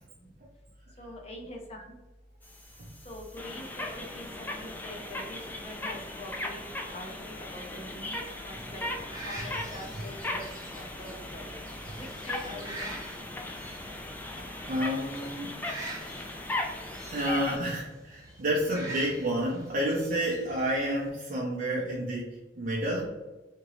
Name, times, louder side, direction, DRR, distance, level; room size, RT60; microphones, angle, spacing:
voice 1, 1.0-2.0 3.0-8.8 9.2-10.4 10.7-11.5 12.0-13.0, left 1 dB, 35° left, -1 dB, 0.7 m, -44 dB
sound 1, 2.4-17.6, left 2 dB, 10° left, 0.4 m, -38 dB
sound 2, 8.8-21.1, right 1 dB, 20° right, 0.8 m, -45 dB
voice 2, 14.4-15.6 17.1-23.1, right 1 dB, 50° right, -3 dB, 0.5 m, -30 dB
2.9 x 2.6 x 2.9 m, 1.2 s
head